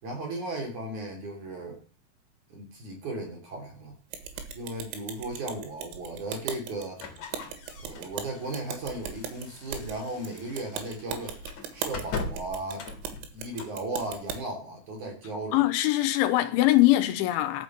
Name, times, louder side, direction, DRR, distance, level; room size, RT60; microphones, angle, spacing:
voice 1, 0.0-1.8 2.5-3.9 4.6-7.0 7.8-11.4 11.7-12.9 13.3-15.6, right 2 dB, 40° right, 4.1 m, -36 dB
sound 1, 4.1-14.4, right 7 dB, 85° right, 4.3 m, -38 dB
sound 2, 7.0-13.8, left 5 dB, 50° left, 2.4 m, -41 dB
voice 2, 15.5-17.6, left 16 dB, 80° left, 3.1 m, -22 dB
12.5 x 6.2 x 7.4 m
omnidirectional pair, 5.7 m